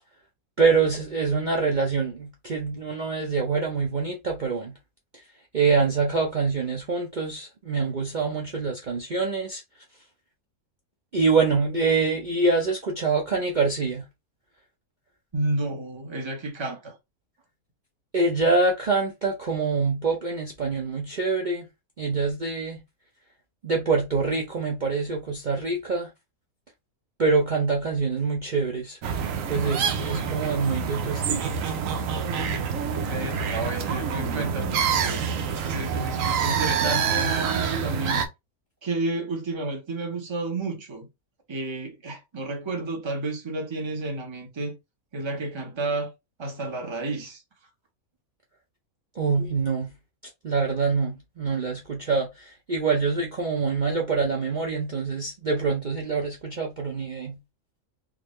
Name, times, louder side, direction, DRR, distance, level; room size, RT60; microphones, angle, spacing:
voice 1, 0.6-4.8 5.5-9.6 11.1-14.0 18.1-21.7 22.0-22.8 23.6-26.1 27.2-29.0 29.5-31.5 49.2-49.9 50.4-57.4, right 4 dB, 50° right, 0.5 m, -25 dB
voice 2, 15.3-16.9 33.0-35.2 35.6-38.2 38.8-41.1 41.5-44.7 45.1-46.1 46.4-47.4, right 2 dB, 20° right, 0.9 m, -31 dB
sound 1, 29.0-38.3, right 6 dB, 65° right, 1.0 m, -27 dB
3.7 x 2.6 x 3.1 m
omnidirectional pair, 1.6 m